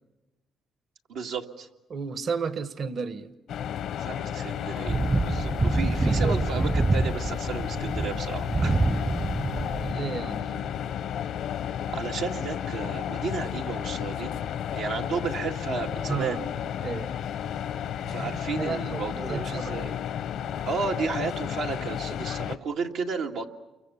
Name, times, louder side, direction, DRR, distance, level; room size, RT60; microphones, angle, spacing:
voice 1, 1.1-1.7 4.0-8.8 11.9-14.4 14.7-16.4 18.1-19.9 20.7-23.5, right 5 dB, 85° right, 2.1 m, -33 dB
voice 2, 1.9-3.3 6.1-6.4 9.6-10.7 16.1-17.2 17.9-19.8, right 5 dB, 55° right, 1.3 m, -33 dB
sound 1, 3.5-22.6, left 9 dB, 80° left, 0.9 m, -32 dB
sound 2, 4.9-9.9, right 2 dB, 25° right, 0.8 m, -26 dB
29.5 x 24.0 x 7.0 m
cardioid pair, 90°, 0 cm